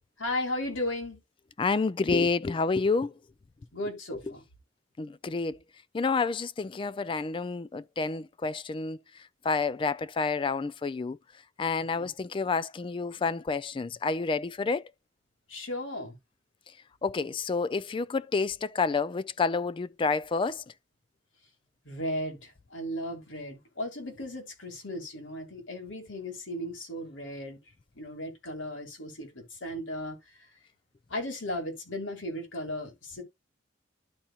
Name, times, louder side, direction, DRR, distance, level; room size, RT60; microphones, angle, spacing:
voice 1, 0.2-1.2 3.7-4.4 12.0-12.1 15.5-16.2 21.9-27.6 28.0-30.2 31.1-33.2, left 1 dB, 90° left, 2.3 m, -35 dB
voice 2, 1.6-3.1 4.1-4.2 5.0-5.6 5.9-9.0 9.4-11.2 11.6-14.8 17.0-20.6, left 4 dB, 25° left, 0.3 m, -29 dB
12.0 x 4.2 x 2.3 m
head